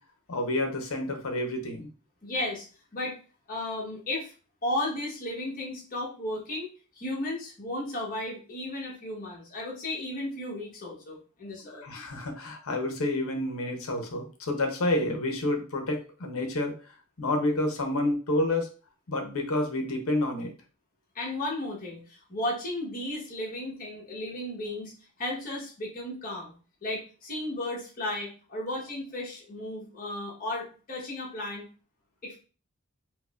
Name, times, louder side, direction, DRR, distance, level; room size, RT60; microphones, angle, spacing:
voice 1, 0.3-1.9 11.7-16.8 17.2-18.7 19.1-20.5, left 1 dB, 70° left, 3 dB, 0.8 m, -29 dB
voice 2, 2.2-2.7 2.9-3.2 3.5-4.3 4.6-11.8 21.1-24.9 25.2-26.5 26.8-31.7 32.2-32.4, left 1 dB, 40° left, -4 dB, 1.2 m, -34 dB
4.5 x 2.1 x 2.4 m, 0.37 s
head